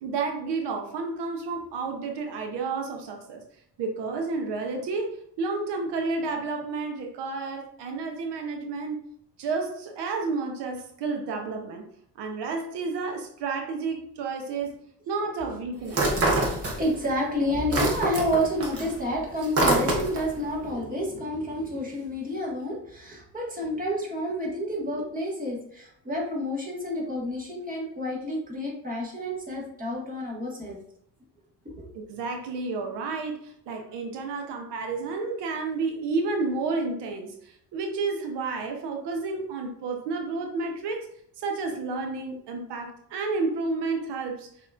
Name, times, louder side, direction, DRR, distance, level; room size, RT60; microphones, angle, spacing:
voice 1, 0.0-3.4 3.8-9.0 9.4-11.8 12.2-14.7 15.1-16.1 31.9-41.1 41.4-44.5, right 4 dB, 85° right, 3 dB, 0.8 m, -31 dB
sound 1, 15.9-17.1 17.4-20.4, right 2 dB, 35° right, 1.1 m, -25 dB
voice 2, 16.8-30.8 31.6-31.8, equal, 20° right, -4 dB, 1.6 m, -29 dB
5.9 x 3.0 x 2.4 m, 0.69 s
cardioid pair, 120°, 40 cm